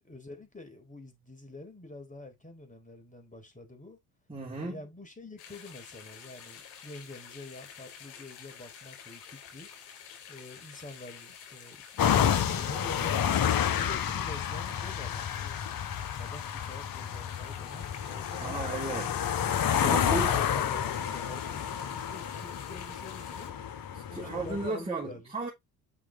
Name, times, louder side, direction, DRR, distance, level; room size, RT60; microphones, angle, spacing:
voice 1, 0.0-4.0 4.6-9.7 10.3-15.6 16.1-18.6 19.8-23.5 24.1-25.3, left 2 dB, 15° left, 4.2 m, -46 dB
voice 2, 4.3-4.8 18.4-19.2 19.8-20.3 23.9-25.5, right 3 dB, 10° right, 3.9 m, -35 dB
sound 1, 5.4-23.5, left 8 dB, 65° left, 5.8 m, -49 dB
sound 2, 12.0-24.7, left 9 dB, 50° left, 1.4 m, -30 dB
8.7 x 6.2 x 3.1 m
hypercardioid pair, 55°, 45 cm